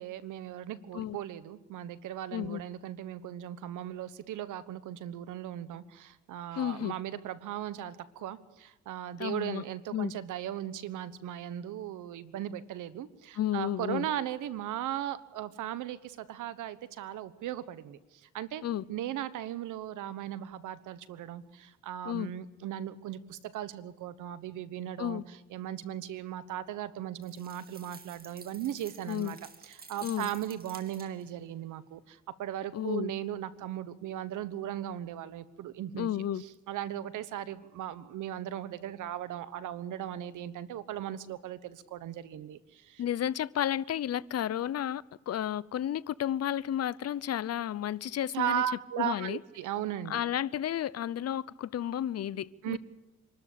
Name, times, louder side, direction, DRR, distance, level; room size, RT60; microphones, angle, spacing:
voice 1, 0.0-18.6 18.9-29.4 29.6-36.1 36.4-43.0 48.3-50.2 52.6-52.8, right 11 dB, 80° right, 1.3 m, -37 dB
voice 2, 6.5-6.9 9.2-9.6 9.9-10.1 13.4-14.1 18.6-18.8 22.0-22.3 25.0-25.2 29.1-29.3 30.0-30.3 32.7-33.1 36.0-36.4 43.0-48.6 49.0-49.4 50.1-52.8, left 11 dB, 55° left, 0.7 m, -32 dB
sound 1, 27.2-31.4, right 4 dB, 30° right, 2.3 m, -51 dB
26.0 x 13.0 x 8.5 m
cardioid pair, 90°, 30 cm